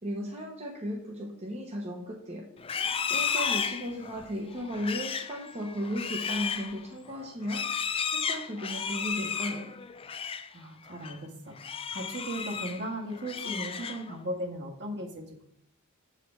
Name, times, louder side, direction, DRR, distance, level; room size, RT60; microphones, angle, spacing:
voice 1, 0.0-2.4 3.1-7.6 8.1-9.7, equal, 30° right, -1 dB, 1.0 m, -35 dB
Livestock farm animals working animals, 2.6-10.5 10.9-11.2 11.6-12.8 13.2-14.2, left 6 dB, 25° left, 0.4 m, -33 dB
voice 2, 10.5-15.4, right 1 dB, 55° right, 1 dB, 1.7 m, -37 dB
7.4 x 5.0 x 6.9 m, 0.72 s
head